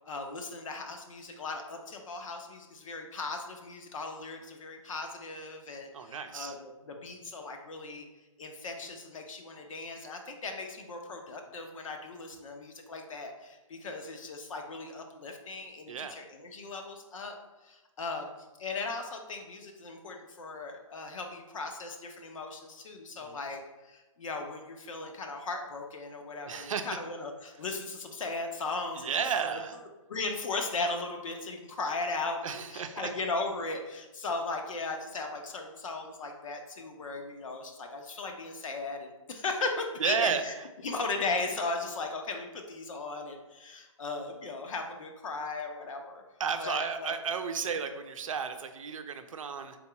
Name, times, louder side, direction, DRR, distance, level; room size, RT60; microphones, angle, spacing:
voice 1, 0.0-8.1 8.4-17.4 17.6-29.6 30.1-40.5 40.8-46.2 46.6-47.2, left 3 dB, 75° left, 3 dB, 0.8 m, -37 dB
voice 2, 5.9-6.5 15.9-16.2 23.2-23.4 26.5-26.9 29.0-29.8 32.4-33.1 40.0-40.4 46.4-49.8, right 6 dB, 75° right, 7 dB, 0.5 m, -33 dB
3.6 x 2.9 x 4.6 m, 1.1 s
hypercardioid pair, 145°, 17 cm